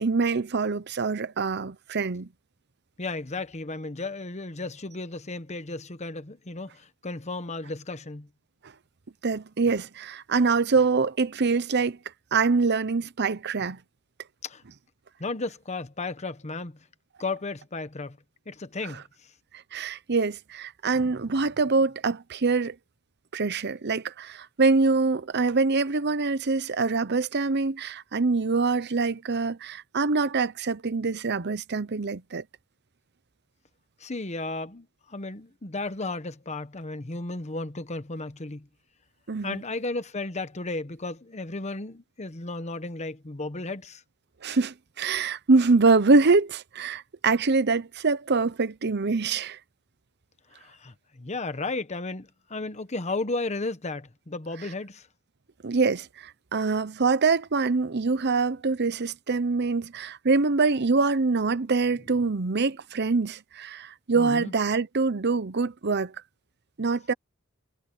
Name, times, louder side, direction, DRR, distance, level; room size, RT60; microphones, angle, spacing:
voice 1, 0.0-2.3 9.2-12.0 12.3-13.8 19.7-22.7 23.3-32.4 39.3-39.6 44.4-49.6 55.6-66.1 66.8-67.1, right 4 dB, 55° right, 0.8 m, -24 dB
voice 2, 3.0-8.3 14.4-14.6 15.2-16.8 17.2-18.2 18.5-19.3 34.0-38.7 39.4-44.0 50.5-55.1 64.1-64.5, left 3 dB, 35° left, 1.1 m, -34 dB
head